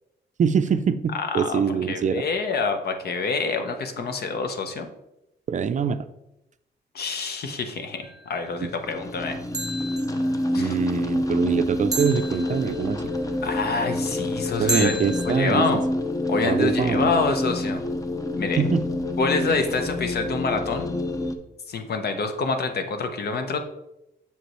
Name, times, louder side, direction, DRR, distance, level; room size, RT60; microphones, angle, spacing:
voice 1, 0.4-2.2 5.5-6.0 8.6-8.7 10.6-13.0 14.6-15.6 16.4-17.1 18.6-18.9, right 6 dB, 45° right, 12 dB, 0.4 m, -24 dB
voice 2, 1.1-1.6 1.9-4.9 6.9-9.4 10.5-10.8 13.4-15.0 15.3-15.8 16.3-17.8 18.3-18.6 19.2-21.0 21.7-23.6, left 4 dB, 60° left, 7 dB, 0.9 m, -27 dB
sound 1, 8.0-8.4 9.5-10.3 11.9-13.0 14.7-15.7, right 2 dB, 20° right, 1.2 m, -31 dB
sound 2, 8.6-21.4, left 1 dB, 20° left, 0.6 m, -27 dB
6.9 x 5.1 x 3.1 m, 0.89 s
cardioid pair, 100°, 18 cm